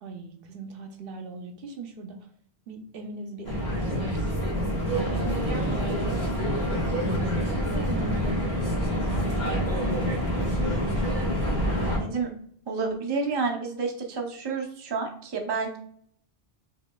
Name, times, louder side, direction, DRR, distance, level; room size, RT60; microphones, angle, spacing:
voice 1, 0.0-2.3 2.7-4.6 4.8-10.4, right 3 dB, 65° right, 4 dB, 0.7 m, -40 dB
sound 1, 3.4-12.0, equal, 45° left, 1.4 m, -26 dB
voice 2, 11.8-12.3 12.7-15.8, right 4 dB, 35° right, 2 dB, 0.5 m, -30 dB
4.9 x 2.8 x 2.2 m, 0.62 s
omnidirectional pair, 1.1 m